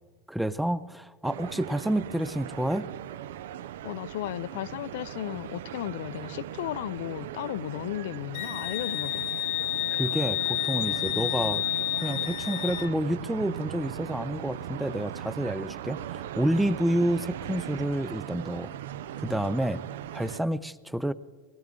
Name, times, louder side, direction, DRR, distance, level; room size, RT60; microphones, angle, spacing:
voice 1, 0.3-2.9 10.0-11.6 12.0-18.7 19.1-19.8 20.1-21.1, right 1 dB, ahead, 0.3 m, -29 dB
sound 1, 1.2-20.4, right 11 dB, 85° right, 0.5 m, -39 dB
voice 2, 3.8-9.3, left 14 dB, 70° left, 0.4 m, -35 dB
Wind instrument woodwind instrument, 8.3-12.9, left 17 dB, 50° left, 0.7 m, -30 dB
20.5 x 17.0 x 3.7 m
supercardioid pair, 160°, 0 cm